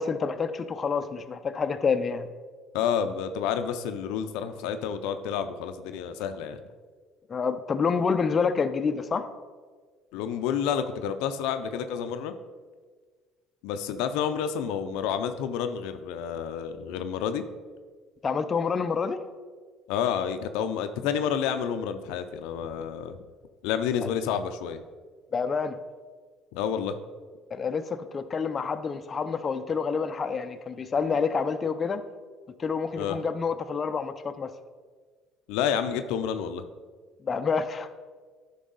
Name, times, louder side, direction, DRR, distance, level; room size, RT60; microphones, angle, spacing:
voice 1, 0.0-2.3 7.3-9.3 18.2-19.2 24.0-24.1 25.3-25.8 27.5-32.0 32.6-34.5 37.3-37.9, left 5 dB, 35° left, 9 dB, 0.5 m, -28 dB
voice 2, 2.7-6.6 10.1-12.3 13.6-17.4 19.9-23.2 23.6-24.8 26.5-27.0 33.0-33.2 35.5-36.6, left 8 dB, 85° left, 9 dB, 0.5 m, -29 dB
10.0 x 5.4 x 4.0 m, 1.5 s
supercardioid pair, 95°, 0 cm